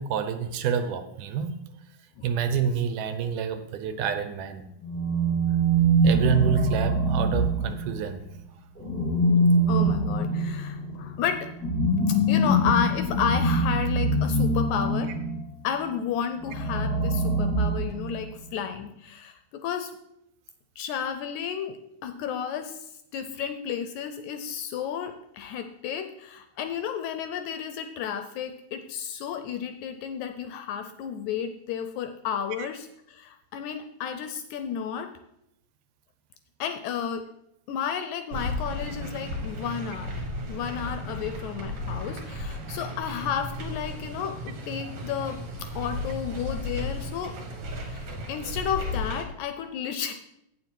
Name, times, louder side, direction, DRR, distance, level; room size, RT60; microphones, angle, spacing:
voice 1, 0.0-1.5 2.2-4.7 6.0-8.2 32.6-32.7, right 7 dB, 80° right, 9 dB, 2.2 m, -28 dB
sound 1, 4.8-8.1 8.8-15.4 16.4-18.3, right 1 dB, 5° left, 1.3 m, -24 dB
voice 2, 9.7-11.5 12.3-15.1 15.6-19.9 20.8-21.8 22.0-35.1 36.6-37.2 37.7-40.2 40.5-45.4 45.8-47.3 47.9-50.1, left 8 dB, 80° left, 7 dB, 1.8 m, -32 dB
sound 2, 38.3-49.2, left 1 dB, 55° right, 2.0 m, -34 dB
8.2 x 7.5 x 4.5 m, 0.81 s
omnidirectional pair, 3.7 m